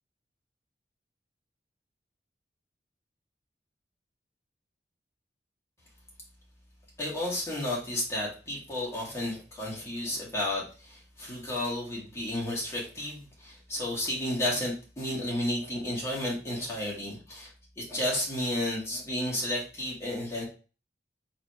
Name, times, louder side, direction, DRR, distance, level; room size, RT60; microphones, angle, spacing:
voice 1, 7.0-20.4, left 1 dB, 15° left, -5 dB, 2.3 m, -32 dB
4.2 x 4.1 x 3.0 m, 0.35 s
head